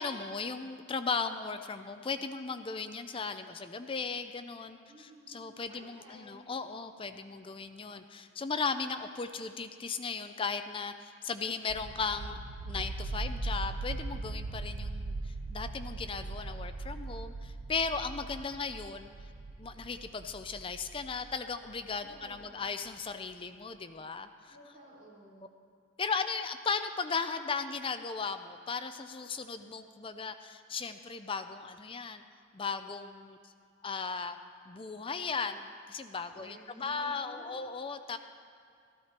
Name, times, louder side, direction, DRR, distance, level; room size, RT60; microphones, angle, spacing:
voice 1, 0.0-12.4 12.6-19.1 19.6-24.5 26.0-32.2 32.5-33.5 33.8-34.4 34.7-38.2, left 5 dB, 25° left, 9 dB, 0.5 m, -36 dB
voice 2, 4.9-5.4 5.7-6.5 22.0-22.6 24.5-25.6 36.3-37.6, equal, 25° right, -8 dB, 4.2 m, -54 dB
sound 1, 11.7-22.4, right 2 dB, 85° right, 0.6 m, -40 dB
15.5 x 14.0 x 4.4 m, 2.3 s
head